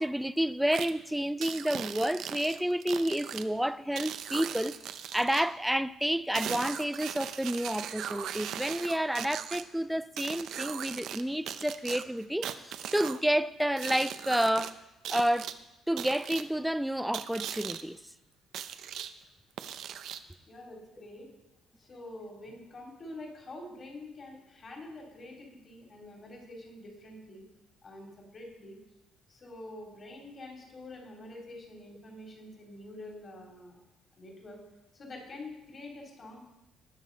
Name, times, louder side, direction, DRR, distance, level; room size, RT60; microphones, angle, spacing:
voice 1, 0.0-4.7 5.1-14.7 15.1-15.5 15.9-18.0, equal, 5° right, 0.4 m, -30 dB
sound 1, 0.7-0.9 1.4-3.4 4.0-5.5 6.3-9.6 10.2-11.2 11.5-13.2 13.8-14.7 15.0-15.5 16.0-16.4 17.1-17.8 18.5-19.1 19.6-20.3, right 9 dB, 70° right, 0.6 m, -38 dB
voice 2, 20.5-21.3 21.8-27.4 27.8-28.8 29.3-33.8 34.1-34.6 34.9-36.4, left 2 dB, 35° left, 3.2 m, -46 dB
19.5 x 6.6 x 4.0 m
cardioid pair, 115°, 0 cm